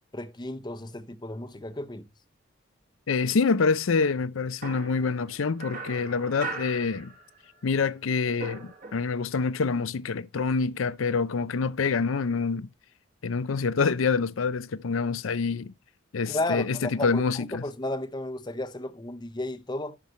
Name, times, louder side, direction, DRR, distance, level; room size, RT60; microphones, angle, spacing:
voice 1, 0.1-2.1 16.3-20.0, left 2 dB, 20° left, 0.7 m, -33 dB
voice 2, 3.1-7.1 7.6-12.7 13.2-15.7 16.1-17.7, left 4 dB, 90° left, 0.5 m, -26 dB
sound 1, 4.6-7.6 7.9-9.4, right 3 dB, 45° right, 1.7 m, -40 dB
12.0 x 5.9 x 3.1 m
head